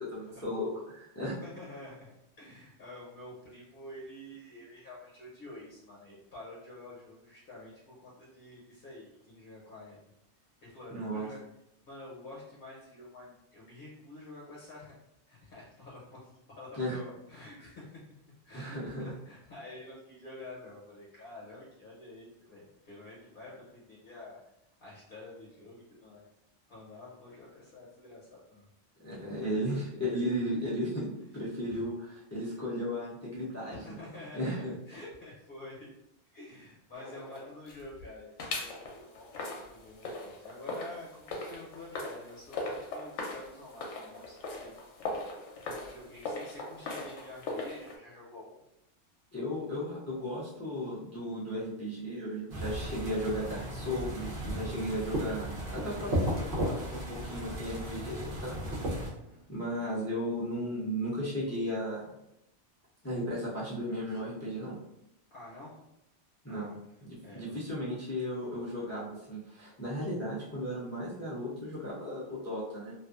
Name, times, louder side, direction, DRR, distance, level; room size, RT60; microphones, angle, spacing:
voice 1, 0.0-1.3 10.9-11.3 16.7-17.0 18.5-19.0 29.0-34.0 34.3-34.7 49.3-58.6 59.5-62.0 63.0-64.8 66.4-72.9, equal, 25° left, -8 dB, 0.4 m, -35 dB
voice 2, 1.4-10.1 10.6-11.4 11.8-14.9 15.3-18.0 18.4-24.4 24.8-26.3 26.7-28.7 31.7-31.8 33.7-34.6 34.9-35.9 36.3-44.7 45.7-48.6 59.2-59.4 64.0-64.2 65.3-65.8 66.5-66.7 67.2-67.6, left 2 dB, 55° left, -6 dB, 0.9 m, -49 dB
sound 1, 36.9-38.0 38.4-48.0, left 2 dB, 85° left, 0.9 m, -40 dB
sound 2, 52.5-59.1, equal, 55° right, 0.9 m, -35 dB
2.4 x 2.4 x 2.3 m, 0.83 s
omnidirectional pair, 1.2 m